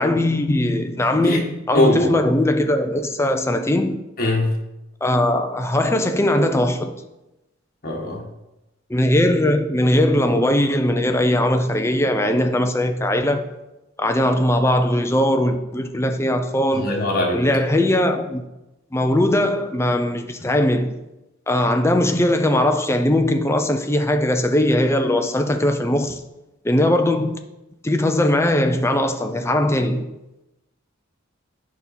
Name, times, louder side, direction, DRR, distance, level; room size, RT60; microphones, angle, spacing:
voice 1, 0.0-4.0 5.0-6.9 8.9-13.4 14.0-17.0 17.3-18.4 18.9-20.9 21.5-26.2 26.6-27.4 27.8-30.0, left 1 dB, 15° left, 0.6 m, -20 dB
voice 2, 1.7-2.1 4.2-4.5 7.8-8.2 16.7-17.4, left 1 dB, 50° left, 1.7 m, -20 dB
8.5 x 5.3 x 4.3 m
head